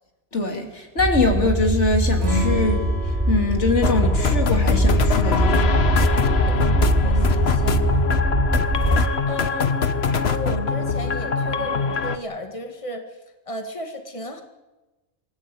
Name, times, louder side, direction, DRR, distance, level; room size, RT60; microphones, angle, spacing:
voice 1, 0.3-5.8, left 3 dB, 80° left, 3 dB, 3.2 m, -23 dB
sound 1, 1.0-9.1, right 1 dB, 25° right, 2.1 m, -21 dB
Acoustic guitar / Strum, 2.2-5.5, right 1 dB, 85° right, 7.4 m, -31 dB
sound 2, 3.8-12.2, left 5 dB, 65° left, 1.3 m, -23 dB
voice 2, 6.5-7.9 9.3-9.7 10.2-13.2 13.5-14.4, left 1 dB, 30° left, 5 dB, 2.2 m, -34 dB
27.0 x 16.0 x 8.6 m, 1.1 s
omnidirectional pair, 1.2 m